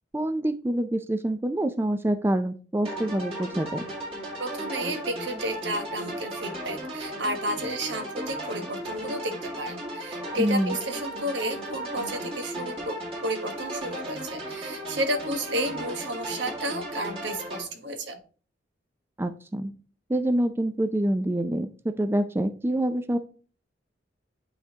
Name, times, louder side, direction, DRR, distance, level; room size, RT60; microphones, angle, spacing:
voice 1, 0.1-3.8 10.4-10.8 19.2-19.7 20.1-23.2, right 1 dB, 15° right, 9 dB, 0.4 m, -26 dB
sound 1, 2.8-17.6, right 1 dB, 35° right, 1.9 m, -35 dB
voice 2, 4.4-18.2, right 1 dB, 85° right, 6 dB, 1.3 m, -32 dB
9.8 x 3.5 x 2.8 m, 0.38 s
head